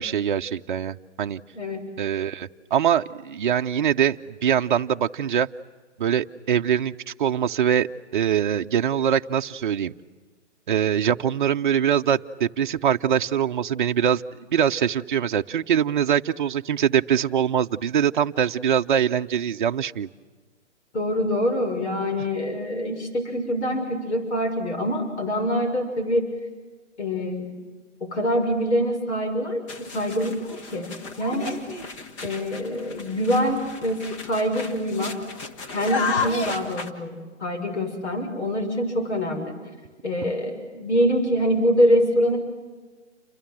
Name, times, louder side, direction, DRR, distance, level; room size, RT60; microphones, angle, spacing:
voice 1, 0.0-1.4 2.0-5.5 6.0-9.9 10.7-14.2 14.5-20.1, right 9 dB, 45° right, 6 dB, 0.8 m, -23 dB
voice 2, 1.5-1.9 20.9-26.3 27.0-27.5 28.0-31.6 32.2-35.2 35.7-39.5 40.0-42.4, equal, 70° left, 4 dB, 6.3 m, -25 dB
sound 1, 29.7-36.9, left 4 dB, 25° left, 1.5 m, -33 dB
29.0 x 25.5 x 7.6 m, 1.4 s
figure-of-eight pair, 145°, 36 cm